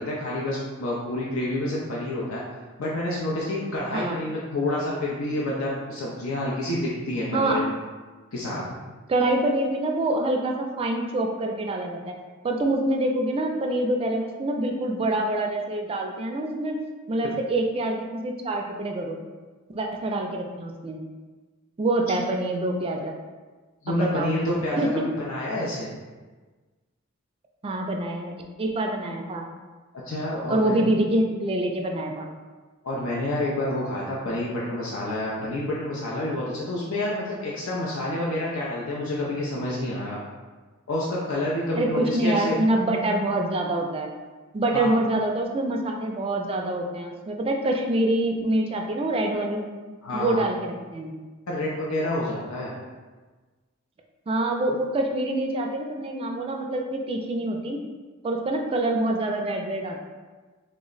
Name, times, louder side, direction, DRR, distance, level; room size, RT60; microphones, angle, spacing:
voice 1, 0.0-2.4 2.8-7.6 8.3-8.6 23.8-25.9 30.0-30.8 32.8-40.2 40.9-42.6 44.7-44.9 50.0-50.4 51.5-52.7, left 1 dB, 75° left, -5 dB, 0.5 m, -28 dB
voice 2, 7.3-7.6 9.1-12.2 12.4-16.8 17.1-19.2 19.7-21.0 21.8-23.1 23.9-24.3 24.8-25.0 27.6-28.3 28.6-29.5 30.5-32.3 41.8-44.1 44.5-49.6 50.1-51.1 54.3-57.8 58.2-60.0, right 1 dB, 25° right, 2 dB, 0.3 m, -26 dB
3.2 x 2.1 x 3.8 m, 1.3 s
head